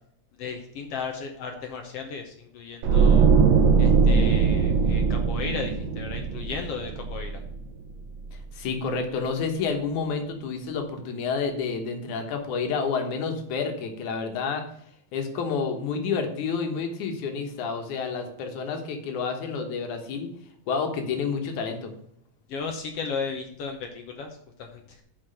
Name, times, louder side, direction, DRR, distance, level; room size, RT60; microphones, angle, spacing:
voice 1, 0.4-3.3 3.8-7.4 22.5-24.3 24.6-25.0, left 5 dB, 65° left, 4 dB, 1.7 m, -35 dB
sound 1, 2.8-7.9 8.2-8.4, right 5 dB, 70° right, 1.8 m, -21 dB
voice 2, 8.3-14.6 15.1-20.3 20.7-21.9, left 5 dB, 85° left, 5 dB, 2.7 m, -29 dB
6.1 x 5.8 x 6.4 m, 0.71 s
omnidirectional pair, 3.4 m